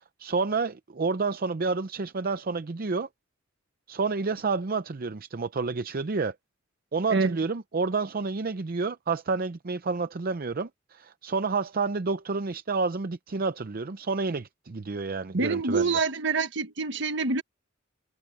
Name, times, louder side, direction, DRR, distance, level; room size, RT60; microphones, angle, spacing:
voice 1, 0.2-3.1 3.9-6.3 6.9-15.9, right 4 dB, 45° right, 0.6 m, -29 dB
voice 2, 15.3-17.4, right 4 dB, 65° right, 1.3 m, -26 dB
head